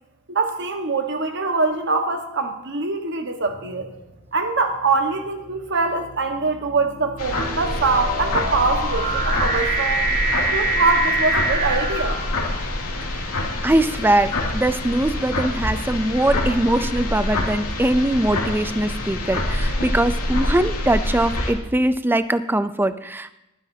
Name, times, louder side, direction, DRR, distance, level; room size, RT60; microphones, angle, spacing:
voice 1, 0.3-3.9 4.3-10.0 10.5-12.2, right 3 dB, 55° right, 5 dB, 1.4 m, -23 dB
sound 1, 3.5-3.9 4.7-13.0, right 2 dB, 40° right, 4.6 m, -26 dB
sound 2, 7.2-21.5, left 1 dB, 80° left, 2.6 m, -26 dB
voice 2, 13.6-23.3, right 1 dB, 10° right, 12 dB, 0.5 m, -21 dB
20.5 x 10.0 x 2.8 m, 0.91 s
head